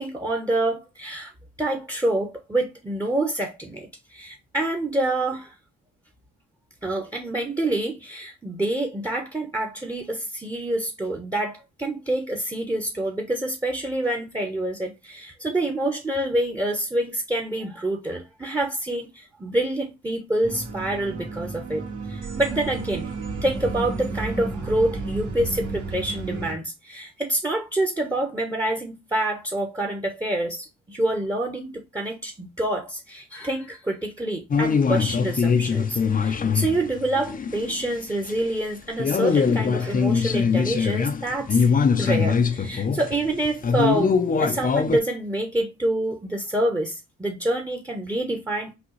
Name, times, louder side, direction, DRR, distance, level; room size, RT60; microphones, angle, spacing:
voice 1, 0.0-1.3 1.6-5.5 6.8-23.1 23.4-41.6 42.0-48.7, right 1 dB, 10° right, 0.9 m, -27 dB
sound 1, 20.4-26.5, right 3 dB, 75° right, 2.0 m, -32 dB
sound 2, 34.5-38.0 38.3-38.4 39.0-45.0, left 6 dB, 30° left, 0.6 m, -22 dB
6.0 x 2.3 x 3.1 m
cardioid pair, 90°, 30 cm